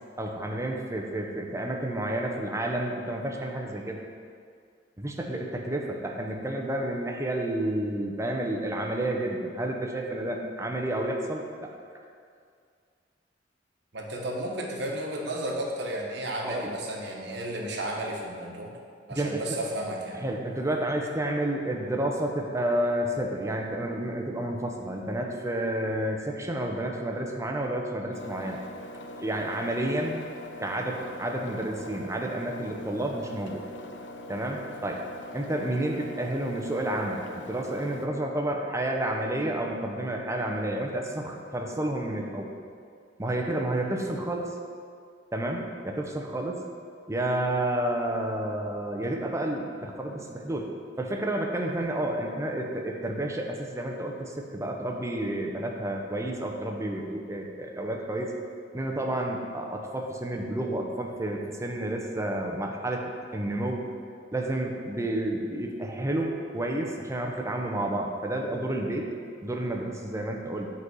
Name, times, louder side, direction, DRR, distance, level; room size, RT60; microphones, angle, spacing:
voice 1, 0.2-4.0 5.0-11.7 16.4-16.7 19.1-19.4 20.1-28.6 29.2-30.3 30.6-33.6 34.3-35.0 35.3-42.5 43.2-44.5 45.3-46.6 47.1-50.7 51.0-58.3 58.7-63.9 64.3-69.1 69.4-70.7, right 1 dB, 15° right, 1 dB, 0.7 m, -30 dB
voice 2, 13.9-18.7 19.1-20.2, right 1 dB, 70° right, 0 dB, 1.2 m, -33 dB
Engine, 28.1-38.1, left 1 dB, 90° left, 0.6 m, -42 dB
8.1 x 4.1 x 6.2 m, 2.2 s
head